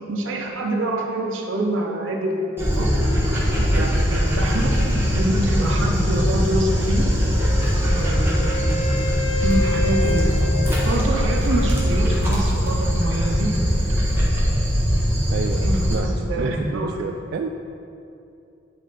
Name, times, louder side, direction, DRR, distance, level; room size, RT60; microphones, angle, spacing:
voice 1, 0.1-2.9 3.7-7.1 7.9-8.9 9.4-14.1 15.3-17.0, right 1 dB, 80° right, 0 dB, 0.9 m, -26 dB
Dog, 2.6-15.9, equal, 10° right, 1.4 m, -21 dB
voice 2, 3.2-4.0 15.3-17.5, right 4 dB, 55° right, 4 dB, 0.3 m, -30 dB
Wind instrument woodwind instrument, 7.4-12.2, left 2 dB, 85° left, 0.9 m, -30 dB
10.5 x 3.7 x 3.9 m, 2.7 s
head